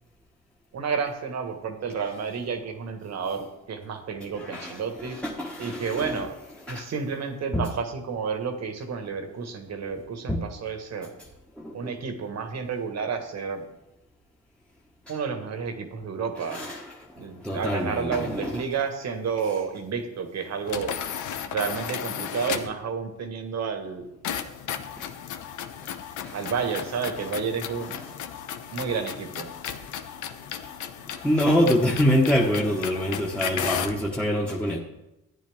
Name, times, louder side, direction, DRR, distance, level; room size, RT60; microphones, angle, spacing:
voice 1, 0.7-5.2 5.6-6.3 6.7-11.1 11.7-13.6 15.1-16.6 17.2-21.2 21.5-24.0 26.3-28.0 28.7-29.5, right 6 dB, 60° right, 6 dB, 1.7 m, -31 dB
voice 2, 4.2-6.3 6.6-6.9 7.5-7.7 10.3-10.4 11.6-11.9 15.1-15.2 16.4-17.0 17.4-18.6 25.0-25.1 26.2-26.4 27.2-27.3 27.8-28.1 31.2-34.8, equal, 5° left, -3 dB, 1.3 m, -26 dB
sound 1, 20.7-22.8 24.2-34.0, left 8 dB, 80° left, 0.9 m, -34 dB
13.5 x 9.7 x 3.6 m, 0.92 s
cardioid pair, 90°, 30 cm